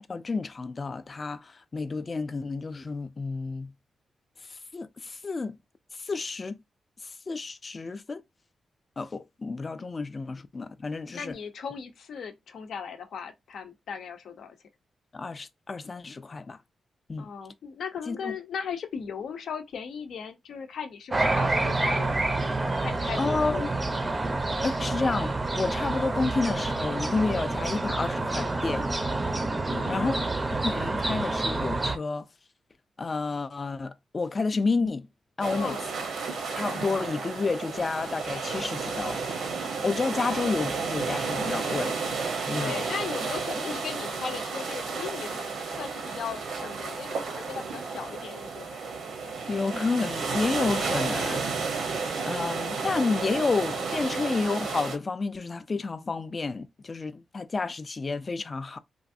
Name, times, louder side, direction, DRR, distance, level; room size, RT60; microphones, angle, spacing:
voice 1, 0.1-3.7 4.4-5.6 5.9-6.6 7.0-8.2 9.0-11.3 15.1-16.6 17.1-17.3 18.1-18.3 23.2-23.7 24.6-28.9 29.9-30.2 30.6-32.3 33.0-35.1 35.4-35.8 36.5-39.2 39.8-42.0 42.5-42.8 49.5-51.6 52.3-58.8, left 4 dB, 35° left, 0.3 m, -30 dB
voice 2, 11.1-14.6 17.2-23.7 29.7-30.4 35.5-35.8 42.5-48.8, left 6 dB, 80° left, 0.6 m, -38 dB
sound 1, 21.1-32.0, right 2 dB, 25° right, 0.5 m, -28 dB
sound 2, 35.4-55.0, right 4 dB, 85° right, 0.8 m, -32 dB
3.0 x 2.5 x 2.6 m
wide cardioid pair, 115°, 0 cm